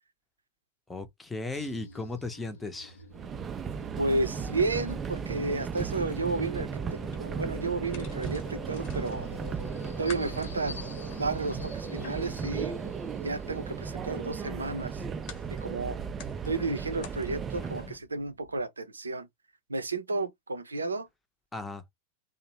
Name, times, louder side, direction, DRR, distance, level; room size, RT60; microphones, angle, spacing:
voice 1, 0.9-3.0 21.5-21.8, left 2 dB, 10° left, 0.6 m, -36 dB
sound 1, 1.5-18.7, left 3 dB, 70° left, 0.5 m, -48 dB
Subway metro underground, 3.1-18.0, right 6 dB, 25° right, 0.3 m, -36 dB
voice 2, 4.0-9.3 10.0-10.8 11.2-12.8 13.2-15.0 15.6-16.0 16.5-19.3 19.7-21.1, right 3 dB, 75° right, 0.5 m, -32 dB
sound 2, 7.0-18.0, left 6 dB, 45° left, 0.9 m, -51 dB
2.6 x 2.0 x 2.9 m
figure-of-eight pair, 90°, 0 cm